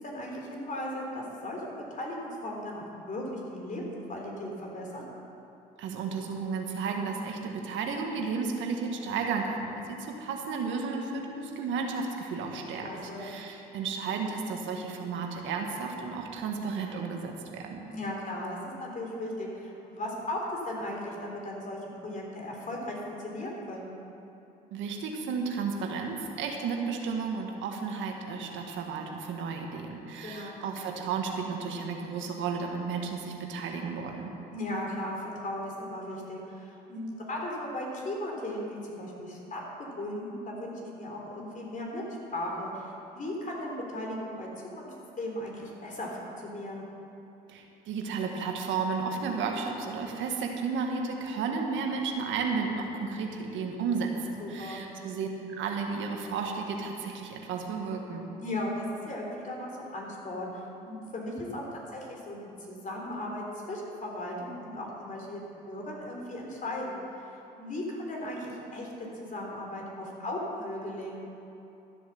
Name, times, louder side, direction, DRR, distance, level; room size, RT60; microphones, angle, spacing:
voice 1, 0.0-1.6 1.9-5.1 12.8-13.4 17.9-23.9 30.2-30.6 34.5-42.0 42.3-46.8 54.4-54.9 58.4-67.0 67.6-71.3, left 1 dB, 40° left, -1 dB, 3.6 m, -37 dB
voice 2, 5.8-17.9 24.7-34.3 47.5-58.3, right 5 dB, 70° right, 2 dB, 1.6 m, -33 dB
13.5 x 7.8 x 7.0 m, 2.9 s
supercardioid pair, 70°, 20 cm